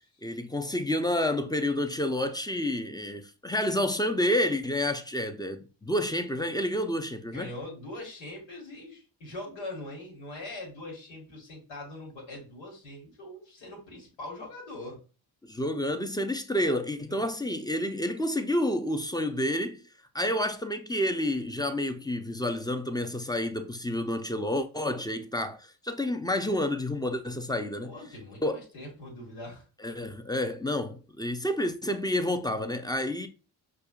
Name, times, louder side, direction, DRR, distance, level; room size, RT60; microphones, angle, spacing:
voice 1, 0.2-7.5 15.4-19.8 20.1-28.0 28.4-28.6 29.8-33.3, left 1 dB, 10° left, 0.5 m, -29 dB
voice 2, 7.3-15.0 17.1-17.2 27.8-29.6, left 1 dB, 90° left, 1.7 m, -42 dB
5.3 x 2.4 x 2.3 m
supercardioid pair, 50°, 46 cm